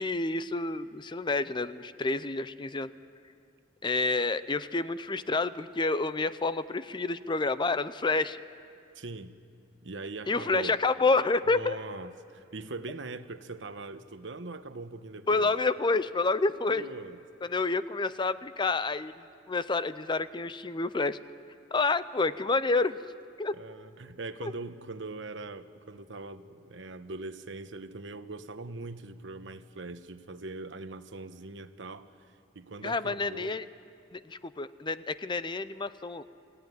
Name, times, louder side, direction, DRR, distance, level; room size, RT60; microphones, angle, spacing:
voice 1, 0.0-2.9 3.8-8.4 10.3-11.8 15.3-16.9 17.4-21.2 21.7-23.0 23.4-23.6 24.4-24.5 32.8-33.6 34.1-36.2, left 3 dB, 25° left, 14 dB, 0.6 m, -29 dB
voice 2, 8.9-9.4 9.8-10.8 11.5-15.5 16.7-17.2 23.5-32.1 32.5-33.5, right 3 dB, 75° right, 10 dB, 1.1 m, -41 dB
28.5 x 16.5 x 9.6 m, 2.5 s
head